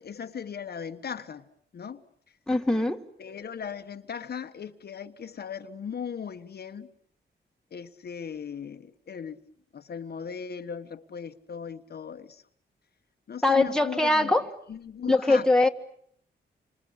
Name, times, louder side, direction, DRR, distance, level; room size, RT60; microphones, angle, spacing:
voice 1, 0.0-1.5 1.7-2.0 3.2-6.9 7.7-9.4 9.7-12.4 13.3-15.5, left 7 dB, 55° left, 7 dB, 1.4 m, -38 dB
voice 2, 2.5-3.0 13.4-14.5 15.1-15.7, left 2 dB, 5° left, 3 dB, 2.0 m, -22 dB
27.5 x 26.0 x 8.2 m, 0.66 s
cardioid pair, 105°, 19 cm